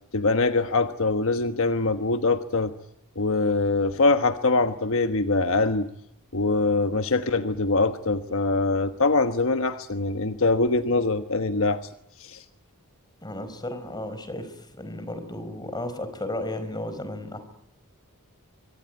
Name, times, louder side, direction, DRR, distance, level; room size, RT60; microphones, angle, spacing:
voice 1, 0.1-2.7 3.2-5.9 6.3-11.8 12.2-12.4, left 3 dB, 65° left, 9 dB, 1.3 m, -23 dB
voice 2, 13.2-17.4, left 1 dB, 20° left, 11 dB, 4.6 m, -34 dB
25.5 x 24.0 x 9.4 m, 0.79 s
head